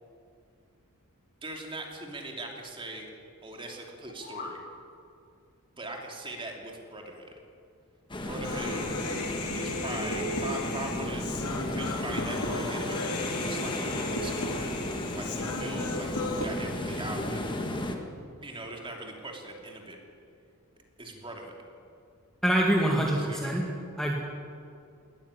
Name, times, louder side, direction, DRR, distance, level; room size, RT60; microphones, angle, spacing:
voice 1, 1.4-3.1 3.4-4.6 5.8-7.3 8.2-8.9 9.5-11.3 11.7-17.4 18.4-20.0 21.0-21.5 23.1-23.6, right 2 dB, 25° right, 1 dB, 2.9 m, -40 dB
sound 1, 3.9-4.6, left 4 dB, 45° left, 3.8 m, -42 dB
sound 2, 8.1-18.0, left 1 dB, 20° left, 1.7 m, -34 dB
Human voice, 8.4-16.5, left 2 dB, 90° left, 2.4 m, -35 dB
voice 2, 22.4-23.6 24.0-24.1, right 1 dB, ahead, -1 dB, 1.9 m, -25 dB
19.0 x 13.5 x 9.9 m, 2.5 s
head